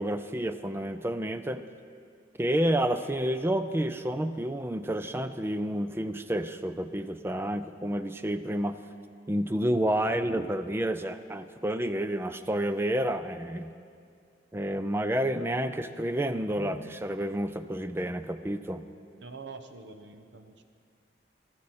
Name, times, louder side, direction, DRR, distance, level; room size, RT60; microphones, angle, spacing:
voice 1, 0.0-1.6 2.4-8.8 9.3-13.7 14.5-18.9, right 1 dB, 10° right, 11 dB, 0.4 m, -29 dB
voice 2, 19.2-20.6, right 4 dB, 70° right, 8 dB, 0.8 m, -45 dB
15.0 x 13.0 x 4.2 m, 2.3 s
head